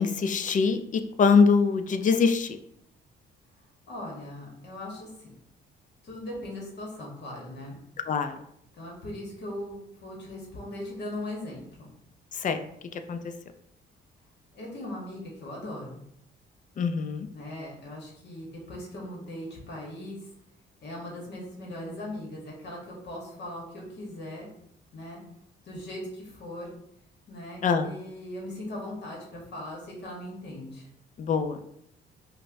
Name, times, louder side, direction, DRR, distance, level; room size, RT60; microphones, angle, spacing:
voice 1, 0.0-2.5 8.1-8.3 12.4-12.6 13.1-13.2 16.8-17.3 27.6-27.9 31.2-31.6, left 5 dB, 40° left, 8 dB, 0.4 m, -23 dB
voice 2, 3.9-5.4 6.0-7.8 8.8-11.9 14.5-16.0 17.3-20.2 20.8-24.5 24.9-25.2 25.6-26.7 27.3-30.9, left 1 dB, 60° left, -3 dB, 1.1 m, -39 dB
5.2 x 2.0 x 2.6 m, 0.73 s
cardioid pair, 90°, 20 cm